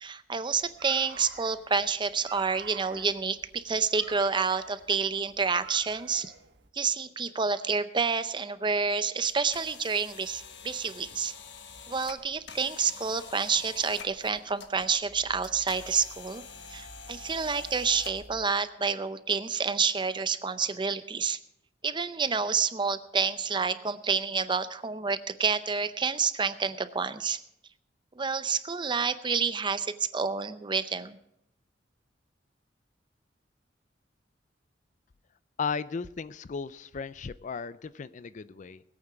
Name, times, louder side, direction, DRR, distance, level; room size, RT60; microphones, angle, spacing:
voice 1, 0.0-6.3 6.7-11.3 11.9-16.4 16.7-21.4 21.8-27.4 28.2-31.2, right 5 dB, 25° right, 12 dB, 0.6 m, -29 dB
sound 1, 0.6-6.7, right 6 dB, 70° right, 1.3 m, -49 dB
sound 2, 9.3-18.4, left 4 dB, 70° left, 1.3 m, -46 dB
voice 2, 35.6-38.8, left 5 dB, 45° left, 16 dB, 0.4 m, -35 dB
20.0 x 8.7 x 4.7 m, 0.79 s
head